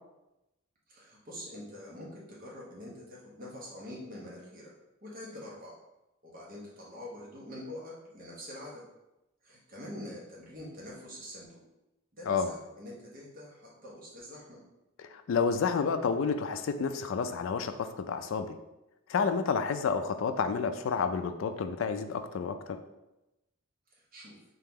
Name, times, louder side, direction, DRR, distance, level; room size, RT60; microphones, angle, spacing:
voice 1, 0.9-4.7 5.0-5.8 6.2-8.8 9.4-11.6 12.1-14.6 23.9-24.3, left 1 dB, 40° right, -4 dB, 1.0 m, -45 dB
voice 2, 15.1-18.5 19.1-22.8, left 5 dB, 65° left, 9 dB, 0.3 m, -30 dB
3.6 x 2.9 x 3.6 m, 0.95 s
head